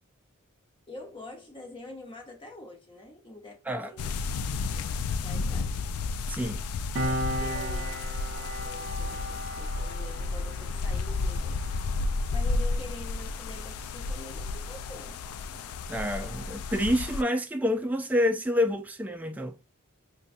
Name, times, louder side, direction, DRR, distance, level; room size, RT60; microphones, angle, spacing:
voice 1, 0.9-4.1 4.7-5.7 7.0-11.7 12.3-15.2, left 1 dB, 25° left, 0.9 m, -46 dB
sound 1, 4.0-17.2, left 3 dB, 75° left, 0.3 m, -32 dB
voice 2, 6.3-6.6 15.9-19.6, left 1 dB, 5° right, 0.3 m, -28 dB
Piano, 7.0-14.0 14.3-14.5, right 1 dB, 60° right, 0.7 m, -37 dB
5.3 x 2.2 x 2.6 m
head